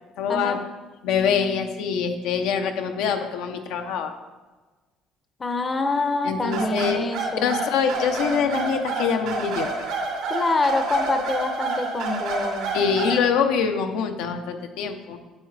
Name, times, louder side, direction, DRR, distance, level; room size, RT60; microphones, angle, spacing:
voice 1, 0.2-0.6 1.0-4.1 6.2-7.0 7.4-9.7 12.7-15.2, left 6 dB, 80° left, 5 dB, 0.8 m, -24 dB
voice 2, 5.4-7.6 10.3-12.7, left 3 dB, 20° left, 7 dB, 0.6 m, -25 dB
sound 1, 6.5-13.2, right 3 dB, 85° right, 2.1 m, -28 dB
8.4 x 7.9 x 3.3 m, 1.3 s
cardioid pair, 140°, 0 cm